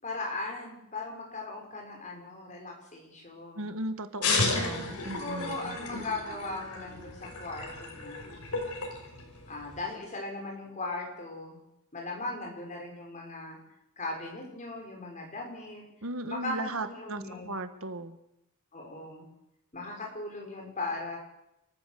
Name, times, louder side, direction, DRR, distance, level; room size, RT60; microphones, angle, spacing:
voice 1, 0.0-3.7 4.5-8.4 9.5-11.6 11.9-13.6 14.0-15.8 16.3-17.6 18.7-19.3 19.7-21.2, left 2 dB, 35° left, 0 dB, 6.4 m, -38 dB
voice 2, 3.6-5.8 16.0-18.2, right 1 dB, 65° right, 9 dB, 1.6 m, -36 dB
sound 1, 4.2-9.9, left 3 dB, 85° left, 5.6 m, -33 dB
30.0 x 14.5 x 7.0 m, 0.86 s
head